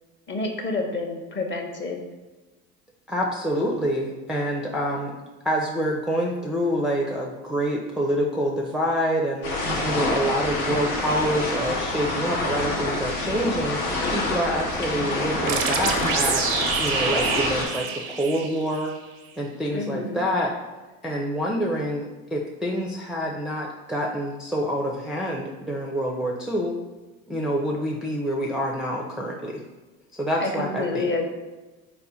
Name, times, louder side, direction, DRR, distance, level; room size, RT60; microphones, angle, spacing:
voice 1, 0.3-2.0 19.7-20.2 30.4-31.3, left 3 dB, 30° left, 3 dB, 0.7 m, -28 dB
voice 2, 3.1-5.1 5.4-9.5 9.8-13.8 14.1-16.4 16.8-18.9 19.4-20.5 21.0-26.8 27.3-29.6 30.2-31.1, equal, ahead, -2 dB, 0.4 m, -27 dB
sound 1, 9.4-17.7, left 2 dB, 90° left, 0.8 m, -27 dB
sound 2, 15.5-19.0, right 6 dB, 85° right, 0.6 m, -27 dB
4.2 x 2.1 x 4.1 m, 1.2 s
hypercardioid pair, 70°, 41 cm